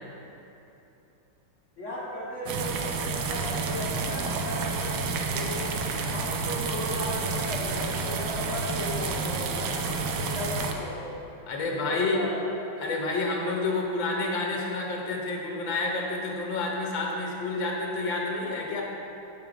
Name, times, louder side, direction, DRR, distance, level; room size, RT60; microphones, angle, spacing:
voice 1, 1.8-4.9 5.3-11.0 11.7-12.5, left 1 dB, 40° left, -7 dB, 1.6 m, -36 dB
sound 1, 2.5-10.7, right 4 dB, 90° right, 1.6 m, -30 dB
voice 2, 11.5-12.3 12.8-18.8, left 3 dB, 65° left, -1 dB, 1.9 m, -29 dB
7.7 x 6.8 x 5.1 m, 3.0 s
omnidirectional pair, 2.2 m